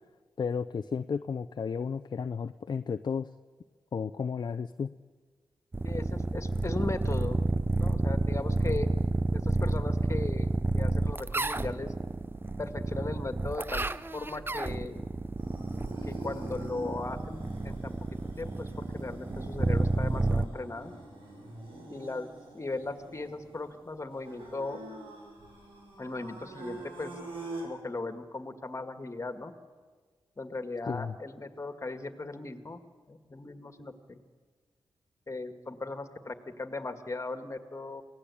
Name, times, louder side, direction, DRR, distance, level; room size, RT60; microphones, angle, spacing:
voice 1, 0.4-3.3 3.9-4.9 30.9-31.1, left 6 dB, 55° left, 9 dB, 0.6 m, -33 dB
sound 1, 5.7-20.5, right 2 dB, 25° right, 0.7 m, -30 dB
voice 2, 5.8-7.4 7.7-8.9 9.3-11.9 12.6-15.1 16.0-20.9 21.9-24.8 26.0-27.2 27.6-29.5 30.4-32.8 33.1-34.2 35.3-38.0, left 3 dB, 35° left, 8 dB, 2.0 m, -38 dB
sound 2, 15.4-27.6, right 2 dB, 80° right, 7.7 m, -45 dB
24.0 x 17.0 x 8.6 m, 1.5 s
cardioid pair, 60°, 9 cm